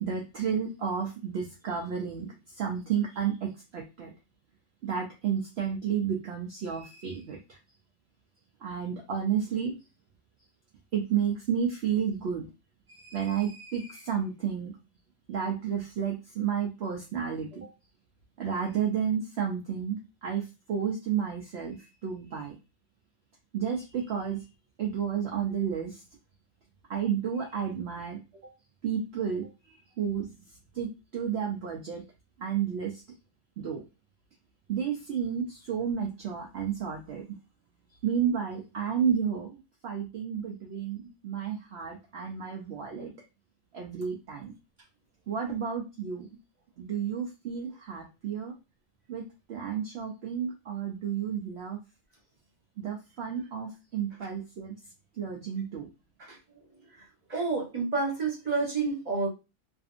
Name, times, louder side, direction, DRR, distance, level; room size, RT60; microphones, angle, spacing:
voice 1, 0.0-4.1 4.8-7.6 8.6-9.8 10.9-12.5 12.9-14.7 15.3-17.7 18.4-22.6 23.5-24.5 24.8-26.0 26.9-28.2 28.8-29.5 30.0-30.3 30.7-32.0 32.4-33.0 33.6-33.8 34.7-37.3 38.0-43.1 43.7-44.5 45.3-46.3 46.8-48.5 49.1-51.8 52.8-54.7 55.2-55.9, right 7 dB, 65° right, 0 dB, 0.7 m, -31 dB
voice 2, 56.9-59.3, right 4 dB, 35° right, -2 dB, 1.0 m, -30 dB
2.6 x 2.5 x 2.5 m, 0.27 s
omnidirectional pair, 1.5 m